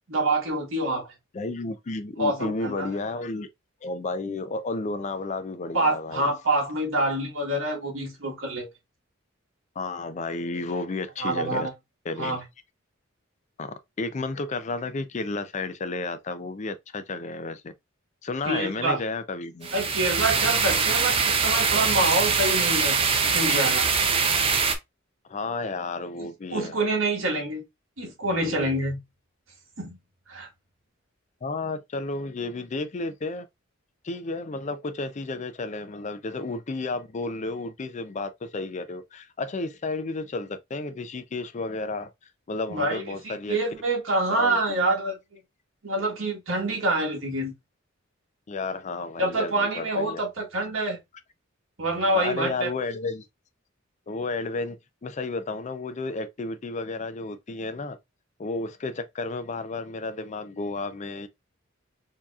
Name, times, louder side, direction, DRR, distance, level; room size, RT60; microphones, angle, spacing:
voice 1, 0.1-1.1 2.2-2.9 5.7-8.7 11.2-11.7 12.2-12.4 18.4-19.0 19.7-23.0 23.3-23.9 26.2-27.6 28.0-29.0 29.8-30.0 30.3-30.5 42.7-45.2 45.8-47.5 49.2-51.0 51.8-52.7, right 2 dB, 70° right, 1.3 m, -26 dB
voice 2, 1.3-3.5 3.8-6.3 9.8-11.7 12.1-12.4 13.6-17.7 18.2-19.8 25.3-26.8 31.4-33.5 34.0-42.1 42.5-43.6 44.3-45.0 48.5-50.2 52.1-53.2 54.1-58.0 58.4-61.3, left 3 dB, 35° left, 0.4 m, -32 dB
sound 1, 19.6-24.7, right 5 dB, 25° right, 0.5 m, -23 dB
4.6 x 2.9 x 2.3 m
head